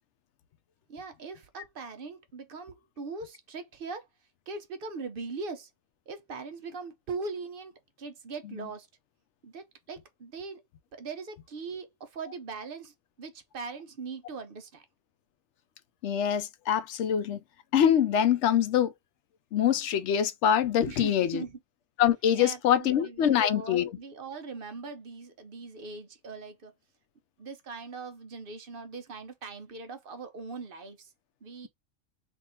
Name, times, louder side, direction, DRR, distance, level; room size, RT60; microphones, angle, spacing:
voice 1, 0.9-4.1 4.5-5.7 6.1-8.9 9.4-10.7 10.9-14.8 20.8-21.6 22.4-26.7 27.4-31.1 31.4-31.7, right 4 dB, 50° right, 0.8 m, -40 dB
voice 2, 16.0-17.4 17.7-18.9 19.5-21.4 22.0-23.9, left 9 dB, 70° left, 0.9 m, -24 dB
3.5 x 2.5 x 4.2 m
omnidirectional pair, 1.3 m